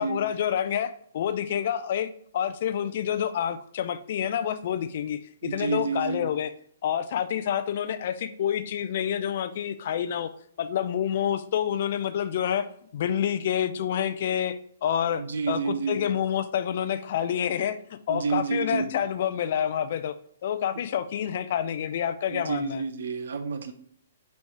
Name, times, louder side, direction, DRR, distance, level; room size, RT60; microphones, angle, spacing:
voice 1, 0.0-6.5 6.8-10.3 10.6-12.7 12.9-20.1 20.4-22.8, left 9 dB, 50° left, 0.5 m, -28 dB
voice 2, 5.4-6.3 15.2-16.1 18.1-18.9 22.3-23.7, right 5 dB, 60° right, 0.8 m, -29 dB
5.3 x 4.5 x 4.7 m
figure-of-eight pair, 120°, 0 cm